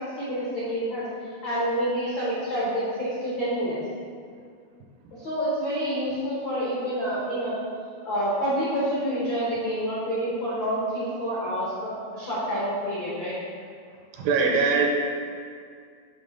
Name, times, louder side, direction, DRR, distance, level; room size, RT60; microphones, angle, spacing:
voice 1, 0.2-1.1 1.4-3.8 5.1-7.6 8.0-13.4, equal, 85° left, -8 dB, 1.0 m, -28 dB
voice 2, 14.2-14.9, right 4 dB, 80° right, 1 dB, 2.1 m, -21 dB
8.3 x 3.2 x 5.2 m, 2.2 s
omnidirectional pair, 4.3 m